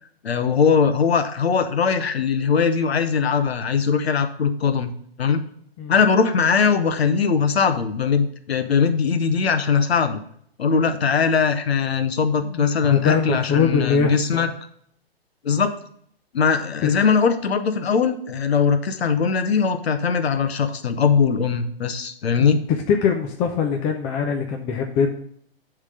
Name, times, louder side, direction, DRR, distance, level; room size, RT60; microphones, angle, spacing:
voice 1, 0.2-4.9 5.2-5.4 5.9-10.2 10.6-14.5 15.4-15.7 16.3-22.6, left 6 dB, 80° left, 9 dB, 1.1 m, -20 dB
voice 2, 12.4-14.5 16.8-16.9 22.4-22.6 22.9-25.1, left 6 dB, 20° left, 3 dB, 0.6 m, -22 dB
8.2 x 3.7 x 6.7 m, 0.65 s
hypercardioid pair, 135°, 31 cm